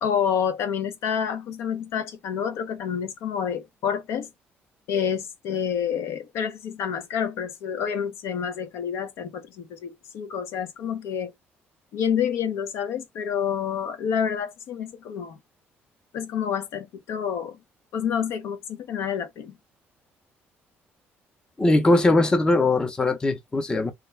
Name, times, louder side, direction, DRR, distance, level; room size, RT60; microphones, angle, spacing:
voice 1, 0.0-4.3 4.9-11.3 11.9-15.4 16.1-17.6 17.9-19.6, left 8 dB, 80° left, 0.6 m, -28 dB
voice 2, 21.6-23.9, left 2 dB, 15° left, 0.5 m, -20 dB
2.3 x 2.2 x 3.1 m
cardioid pair, 135°, 5 cm